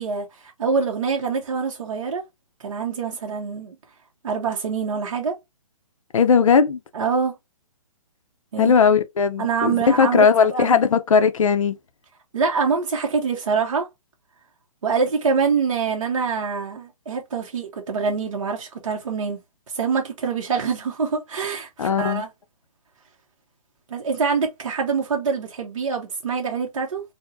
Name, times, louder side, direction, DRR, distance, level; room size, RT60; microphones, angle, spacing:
voice 1, 0.0-2.2 2.6-3.8 4.2-5.4 6.9-7.3 8.5-8.7 9.4-10.8 12.3-13.9 14.8-19.4 19.7-22.3 23.9-27.0, right 5 dB, 60° right, 0.8 m, -25 dB
voice 2, 6.1-6.8 8.6-11.8 21.8-22.2, left 6 dB, 65° left, 0.5 m, -18 dB
4.3 x 2.1 x 2.6 m
hypercardioid pair, 180°, 18 cm